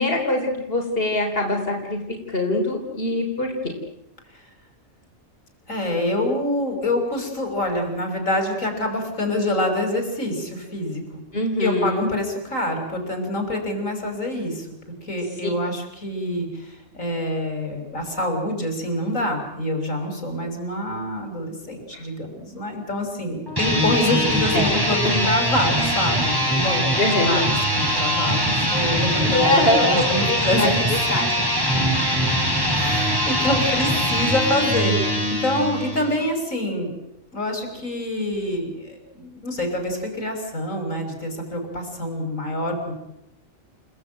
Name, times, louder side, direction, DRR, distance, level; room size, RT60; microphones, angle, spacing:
voice 1, 0.0-2.0 2.3-3.5 11.3-12.0 21.9-22.0 24.5-24.8 25.0-25.3 27.0-27.4 29.2-30.7 31.1-31.5, left 1 dB, 45° left, 1 dB, 4.3 m, -23 dB
voice 2, 5.7-11.2 11.6-14.7 15.0-30.8 31.7-31.8 32.7-37.0 37.3-42.9, left 1 dB, 80° left, 4 dB, 6.2 m, -26 dB
sound 1, 23.5-36.2, equal, 15° right, 5.7 m, -22 dB
29.5 x 18.0 x 9.1 m, 0.88 s
omnidirectional pair, 1.4 m